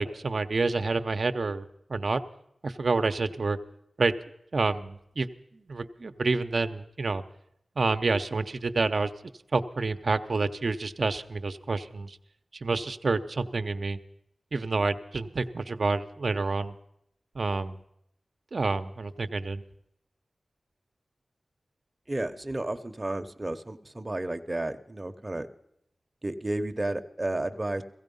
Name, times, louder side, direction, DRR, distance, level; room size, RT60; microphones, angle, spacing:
voice 1, 0.0-2.2 2.6-3.6 4.0-4.1 4.5-5.3 5.7-7.2 7.8-9.1 9.5-12.2 12.6-14.0 14.5-16.8 17.3-17.8 18.5-19.6, right 3 dB, 60° right, 9 dB, 0.7 m, -28 dB
voice 2, 22.1-25.5 26.2-27.8, right 1 dB, 25° right, 7 dB, 0.9 m, -32 dB
16.5 x 16.0 x 5.4 m, 0.76 s
wide cardioid pair, 75°, 0 cm